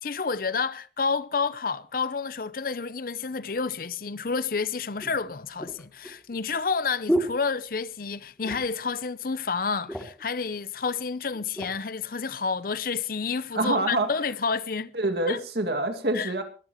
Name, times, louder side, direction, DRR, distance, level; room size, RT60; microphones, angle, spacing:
voice 1, 0.0-14.9 15.3-15.4 16.1-16.3, left 5 dB, 50° left, 0.6 m, -29 dB
sound 1, 4.1-4.2 5.0-8.1 8.4-8.9 9.2-9.3 9.6-10.3 11.0-11.8 12.4-12.6, right 1 dB, 5° left, 2.6 m, -33 dB
voice 2, 13.5-14.1 14.9-16.4, right 2 dB, 65° right, 2.3 m, -26 dB
22.5 x 12.5 x 3.0 m
head